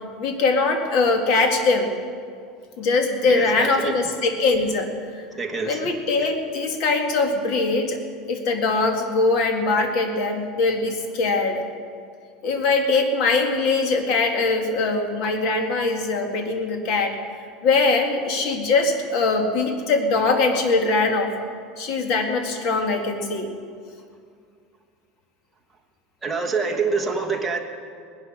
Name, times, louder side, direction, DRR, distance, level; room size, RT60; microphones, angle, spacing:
voice 1, 0.2-1.9 2.8-4.9 5.1-5.2 5.6-8.0 8.3-11.6 12.4-17.2 17.6-21.3 21.8-23.5, left 3 dB, 45° left, 5 dB, 1.8 m, -22 dB
voice 2, 3.3-4.0 5.3-5.9 6.2-6.3 26.2-27.6, right 4 dB, 10° right, 0 dB, 1.3 m, -26 dB
19.0 x 10.5 x 6.2 m, 2.2 s
supercardioid pair, 165°, 0 cm